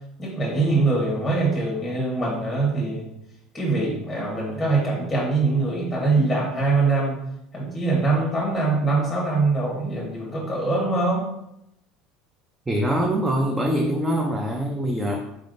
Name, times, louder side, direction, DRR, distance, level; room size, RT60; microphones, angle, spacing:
voice 1, 0.2-3.1 3.5-7.2 7.5-11.3, right 3 dB, 5° left, -4 dB, 0.9 m, -23 dB
voice 2, 12.7-15.2, equal, 10° right, 1 dB, 0.4 m, -23 dB
3.9 x 3.4 x 2.5 m, 0.82 s
cardioid pair, 145°, 0 cm